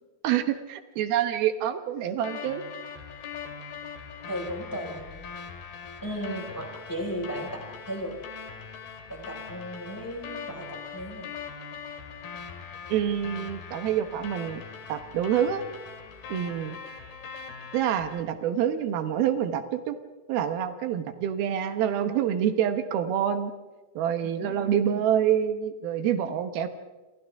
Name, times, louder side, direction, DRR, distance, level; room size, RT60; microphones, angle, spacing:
voice 1, 0.2-2.6 12.9-14.6 14.9-15.6 16.3-16.8 17.7-20.0 20.3-23.5 24.0-26.7, right 9 dB, 80° right, 8 dB, 3.0 m, -27 dB
sound 1, 2.2-18.2, left 6 dB, 85° left, 4.2 m, -41 dB
voice 2, 4.3-5.1 6.0-8.1 9.1-11.3 24.2-24.7, equal, 5° left, 0 dB, 4.6 m, -35 dB
28.0 x 27.5 x 3.6 m, 1.2 s
omnidirectional pair, 4.3 m